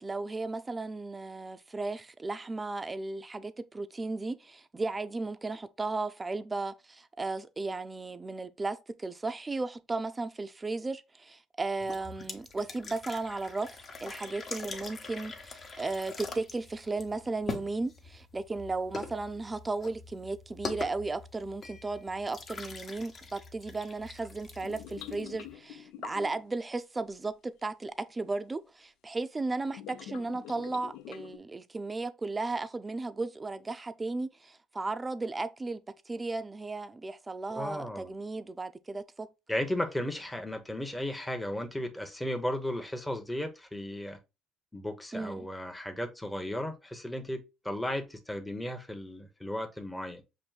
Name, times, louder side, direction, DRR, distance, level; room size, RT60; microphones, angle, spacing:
voice 1, 0.0-35.8 36.1-39.3 45.1-45.5, right 3 dB, 20° right, 0.4 m, -35 dB
sound 1, 11.8-25.5, left 4 dB, 40° left, 0.9 m, -44 dB
sound 2, 24.6-26.5 28.3-28.4 29.6-31.4, left 12 dB, 80° left, 0.3 m, -45 dB
voice 2, 37.5-38.1 39.5-44.2 44.7-50.2, left 1 dB, 5° left, 0.8 m, -35 dB
6.0 x 2.6 x 2.3 m
supercardioid pair, 90°, 0 cm